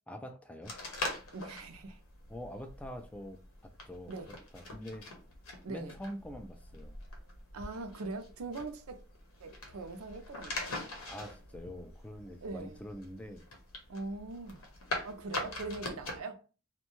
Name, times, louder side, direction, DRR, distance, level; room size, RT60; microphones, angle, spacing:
voice 1, 0.1-0.8 2.3-4.2 4.5-5.1 5.7-7.0 11.1-13.4, equal, 5° left, 0.3 m, -45 dB
sound 1, 0.6-16.2, left 2 dB, 80° left, 0.8 m, -43 dB
voice 2, 1.3-2.0 4.1-4.3 5.6-6.0 7.5-9.0 9.4-10.6 12.4-12.8 13.9-14.6 15.0-16.4, right 3 dB, 85° right, 0.5 m, -41 dB
2.6 x 2.2 x 3.0 m
head